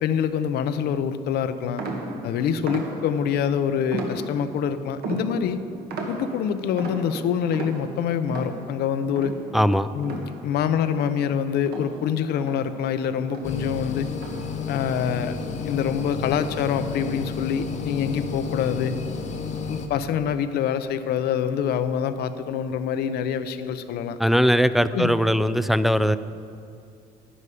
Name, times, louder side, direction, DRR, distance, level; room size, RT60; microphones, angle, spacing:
voice 1, 0.0-1.8 2.2-5.6 6.0-9.3 9.9-14.1 14.7-15.3 15.6-18.9 19.7-24.2 24.9-25.1, left 8 dB, 75° left, 11 dB, 0.7 m, -25 dB
sound 1, 1.8-3.4 3.9-4.6 5.0-10.6 10.9-13.0 13.3-13.7 14.2-14.6, right 3 dB, 70° right, 1.8 m, -35 dB
voice 2, 9.5-9.9 24.2-26.2, equal, ahead, 12 dB, 0.3 m, -20 dB
sound 2, 13.4-19.9, left 5 dB, 45° left, 0.9 m, -32 dB
11.5 x 10.0 x 5.0 m, 2.5 s
cardioid pair, 110°, 17 cm